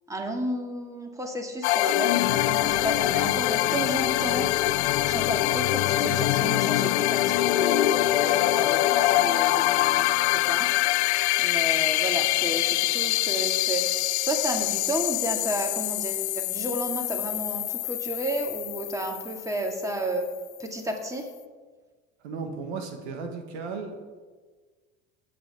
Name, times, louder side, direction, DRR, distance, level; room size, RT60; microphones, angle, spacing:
voice 1, 0.1-4.5 5.1-10.7 11.4-20.3 20.6-21.3, right 1 dB, 10° right, 2 dB, 2.1 m, -32 dB
sound 1, 1.6-20.1, left 15 dB, 90° left, 0.5 m, -24 dB
voice 2, 22.2-24.0, right 4 dB, 90° right, 4 dB, 1.7 m, -35 dB
18.0 x 8.6 x 3.6 m, 1.4 s
supercardioid pair, 95°, 33 cm